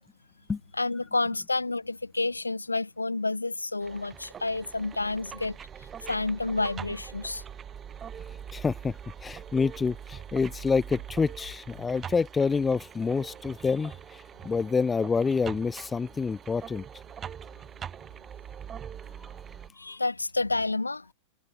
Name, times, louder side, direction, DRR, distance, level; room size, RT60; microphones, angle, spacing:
voice 1, 0.8-5.6 6.1-7.4 19.8-21.1, left 3 dB, 80° left, 0.8 m, -29 dB
sound 1, 3.8-19.7, right 8 dB, 25° right, 1.5 m, -43 dB
voice 2, 8.5-16.8, left 5 dB, 15° left, 0.8 m, -27 dB
figure-of-eight pair, 90°, 0 cm